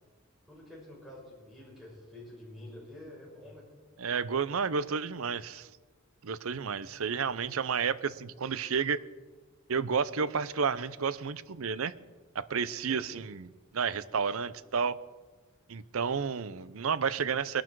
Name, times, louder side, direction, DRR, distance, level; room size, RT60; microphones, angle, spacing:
voice 1, 0.5-3.7 12.9-13.1, left 1 dB, ahead, -5 dB, 6.2 m, -48 dB
voice 2, 4.0-5.7 6.2-9.0 9.7-11.9 12.3-15.0 15.7-17.6, right 6 dB, 85° right, 17 dB, 0.6 m, -31 dB
20.5 x 12.0 x 4.7 m, 1.3 s
head